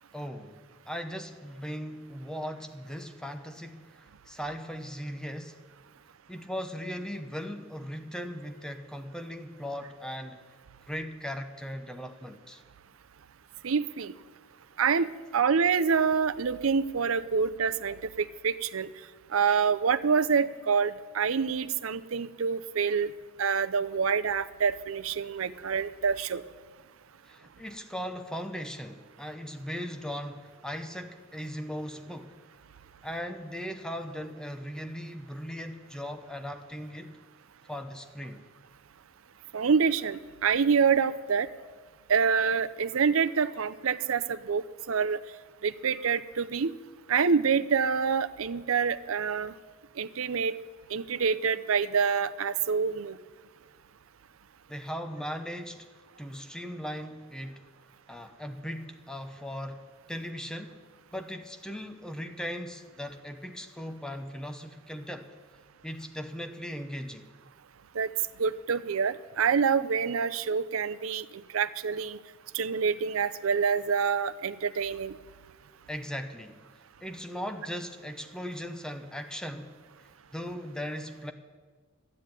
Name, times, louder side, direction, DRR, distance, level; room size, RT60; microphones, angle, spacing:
voice 1, 0.1-5.6 6.3-10.4 10.9-12.6 27.2-32.4 33.0-37.2 37.7-38.4 54.7-55.9 56.2-57.6 58.1-60.8 61.1-65.3 65.8-67.3 75.9-76.7 77.0-79.8 80.3-81.3, equal, 5° left, 6 dB, 0.9 m, -38 dB
voice 2, 13.6-14.1 14.8-18.9 19.3-23.1 23.4-26.4 39.5-41.5 42.1-45.2 45.6-46.7 47.1-49.5 50.0-50.5 50.9-53.2 67.9-68.1 68.4-71.2 71.5-72.2 72.5-75.1, right 6 dB, 75° right, 14 dB, 0.6 m, -26 dB
12.5 x 9.7 x 9.0 m, 1.4 s
head